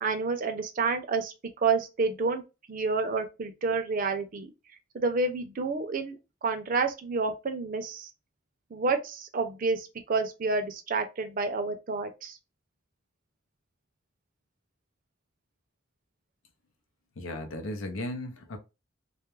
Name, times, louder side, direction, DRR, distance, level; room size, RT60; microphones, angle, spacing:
voice 1, 0.0-2.4 2.7-4.5 4.9-8.1 8.7-12.4, right 4 dB, 45° right, 0.4 m, -29 dB
voice 2, 17.2-18.6, left 1 dB, 85° left, 0.6 m, -36 dB
2.3 x 2.0 x 3.0 m
head